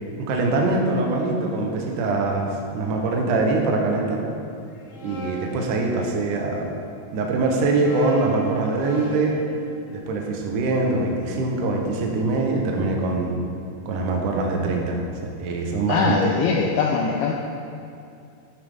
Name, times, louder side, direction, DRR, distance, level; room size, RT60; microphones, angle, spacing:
voice 1, 0.2-4.3 5.0-6.7 7.1-9.4 9.9-13.4 13.9-15.0 15.4-16.3, right 3 dB, 85° right, 1 dB, 1.8 m, -23 dB
sound 1, 4.7-6.6 7.4-11.5, right 2 dB, 55° left, 3.1 m, -39 dB
voice 2, 15.9-17.3, left 5 dB, 90° left, -1 dB, 2.3 m, -22 dB
10.0 x 9.6 x 3.6 m, 2.5 s
omnidirectional pair, 5.2 m